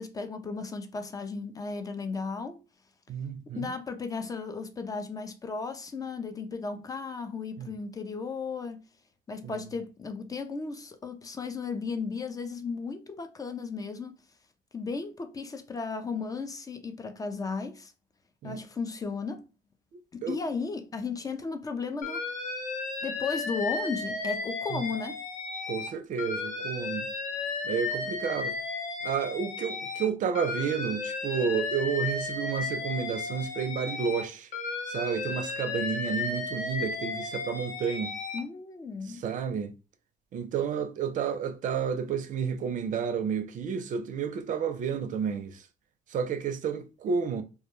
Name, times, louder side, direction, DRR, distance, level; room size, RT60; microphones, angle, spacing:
voice 1, 0.0-2.6 3.6-8.9 9.3-14.1 14.7-17.9 18.4-19.5 20.1-22.2 23.0-25.2 38.3-39.3, left 4 dB, 20° left, 0.4 m, -35 dB
voice 2, 3.1-3.7 7.6-7.7 18.4-18.6 20.2-20.4 24.7-24.8 25.7-27.1 27.6-28.5 29.0-34.5 34.9-38.1 39.2-39.7 40.3-45.6 46.1-47.4, right 7 dB, 50° right, 0.5 m, -31 dB
Alarm, 22.0-25.9 26.2-30.1 30.3-34.2 34.5-38.4, left 4 dB, 50° left, 0.7 m, -34 dB
2.2 x 2.1 x 2.9 m
cardioid pair, 110°, 17 cm